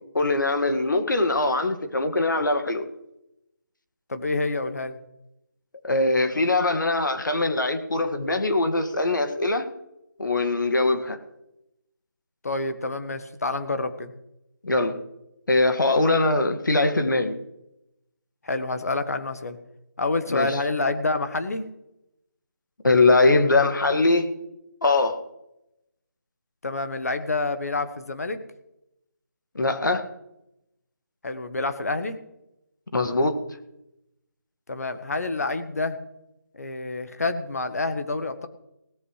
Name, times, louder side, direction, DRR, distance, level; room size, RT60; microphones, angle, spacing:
voice 1, 0.1-2.9 5.8-9.7 10.2-11.2 14.6-15.0 15.5-17.3 20.3-20.6 22.8-24.3 24.8-25.2 29.6-30.0 32.9-33.4, left 2 dB, 85° left, 7 dB, 2.0 m, -22 dB
voice 2, 4.1-5.0 12.4-14.1 18.4-19.6 20.0-21.7 26.6-28.4 31.2-32.2 34.7-36.0 36.5-38.5, left 3 dB, 55° left, 9 dB, 1.4 m, -28 dB
18.0 x 14.0 x 3.3 m, 0.87 s
figure-of-eight pair, 180°, 10 cm